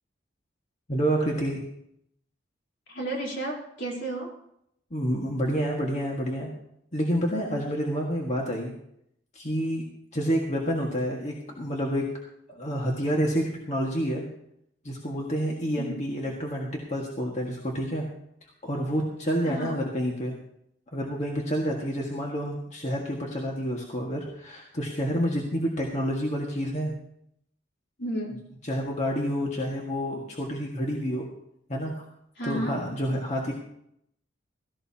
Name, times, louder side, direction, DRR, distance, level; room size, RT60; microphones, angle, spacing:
voice 1, 0.9-1.6 4.9-6.5 6.9-8.7 9.4-9.8 10.1-12.0 12.5-14.3 14.8-18.1 18.6-20.3 20.9-27.0 28.6-31.3 31.7-31.9 32.5-33.5, equal, 40° left, -1 dB, 1.8 m, -28 dB
voice 2, 2.9-4.3 15.7-16.1 19.4-19.8 28.0-28.4 32.4-32.8, right 1 dB, 75° left, -2 dB, 3.9 m, -32 dB
16.5 x 15.0 x 2.9 m, 0.74 s
head